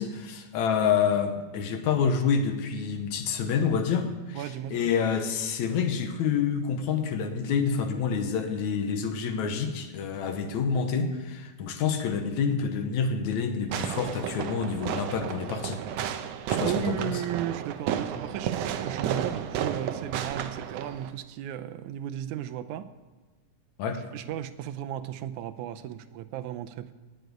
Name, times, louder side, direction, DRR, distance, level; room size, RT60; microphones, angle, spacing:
voice 1, 0.0-4.4 4.7-15.8 16.5-17.2 23.8-24.0, left 6 dB, 75° left, 7 dB, 2.4 m, -28 dB
voice 2, 4.4-4.7 16.6-22.9 24.1-26.9, right 11 dB, 85° right, 9 dB, 2.2 m, -35 dB
Fireworks, 13.7-21.1, right 9 dB, 70° right, 1.8 m, -32 dB
17.5 x 6.6 x 9.3 m, 1.2 s
omnidirectional pair, 3.3 m